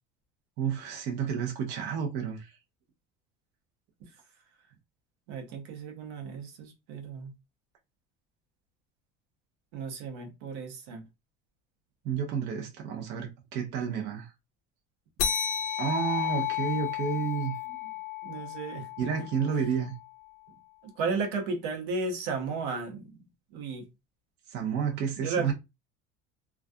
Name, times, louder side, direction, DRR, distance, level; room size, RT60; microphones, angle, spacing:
voice 1, 0.6-2.5 12.0-14.3 15.8-17.5 19.0-19.9 24.5-25.5, right 7 dB, 60° right, 0.6 m, -30 dB
voice 2, 5.3-7.3 9.7-11.0 18.2-19.3 20.8-23.2 23.5-23.9 25.2-25.5, right 4 dB, 85° right, 0.8 m, -34 dB
sound 1, 15.2-20.1, left 10 dB, 70° left, 0.4 m, -33 dB
2.3 x 2.3 x 2.5 m
cardioid pair, 135°, 20 cm